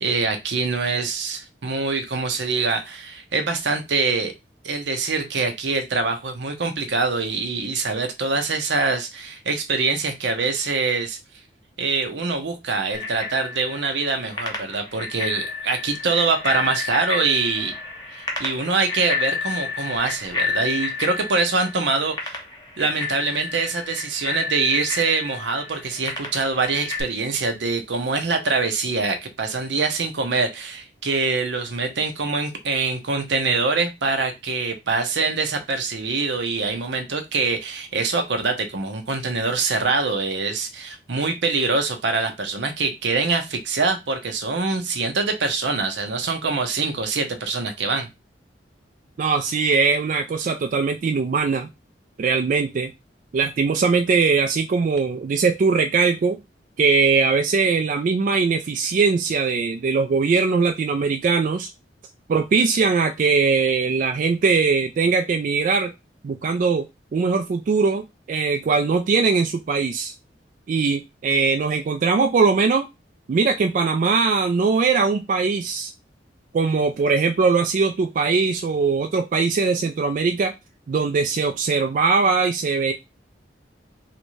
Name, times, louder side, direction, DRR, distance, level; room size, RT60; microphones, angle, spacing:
voice 1, 0.0-4.3 4.6-11.2 11.8-17.7 18.1-22.4 22.8-48.1, right 4 dB, 80° right, 0.7 m, -24 dB
Bicycle bell, 12.9-27.0, left 4 dB, 20° left, 0.9 m, -31 dB
voice 2, 49.2-51.7 52.2-52.9 53.3-56.4 56.8-61.7 62.3-65.9 66.2-66.9 67.1-70.1 70.7-72.9 73.3-75.9 76.5-80.5 80.9-82.9, right 4 dB, 45° right, 0.3 m, -21 dB
3.2 x 2.6 x 3.0 m
head